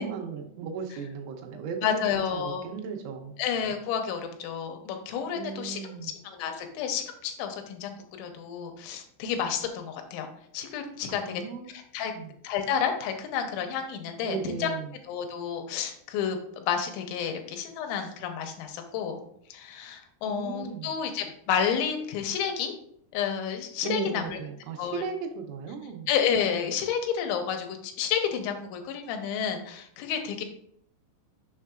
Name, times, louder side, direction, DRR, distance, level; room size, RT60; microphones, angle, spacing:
voice 1, 0.0-3.4 5.4-6.1 11.1-11.7 12.0-12.3 14.2-14.9 20.3-20.9 23.8-26.1, right 6 dB, 90° right, 3 dB, 3.3 m, -36 dB
voice 2, 1.8-2.7 3.4-10.3 10.5-11.4 11.7-12.1 12.4-14.7 15.1-22.7 23.1-24.4 24.8-25.0 26.1-30.4, left 7 dB, 85° left, 5 dB, 3.0 m, -30 dB
7.2 x 5.5 x 2.4 m, 0.67 s
omnidirectional pair, 5.4 m